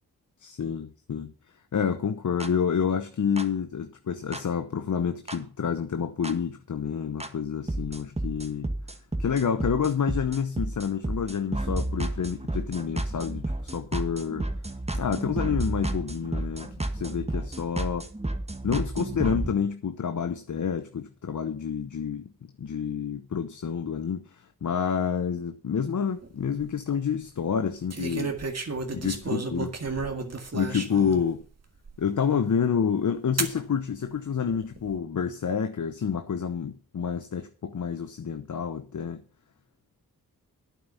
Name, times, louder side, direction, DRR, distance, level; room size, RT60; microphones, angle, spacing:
voice 1, 0.4-1.3 1.7-8.7 9.2-14.5 14.9-18.0 18.6-28.4 28.9-29.7 30.5-31.4 32.0-39.2, left 7 dB, 55° left, 0.9 m, -28 dB
sound 1, 2.4-2.5 3.4-3.5 4.3-4.4 5.3-5.4 6.2-6.3 7.2-7.3 7.7-19.5, right 1 dB, 15° right, 1.7 m, -31 dB
sound 2, 26.2-26.7 27.9-31.2 31.9-32.0 33.4-33.6 34.5-35.0, right 3 dB, 45° right, 2.0 m, -32 dB
9.0 x 7.8 x 6.9 m
cardioid pair, 45°, 36 cm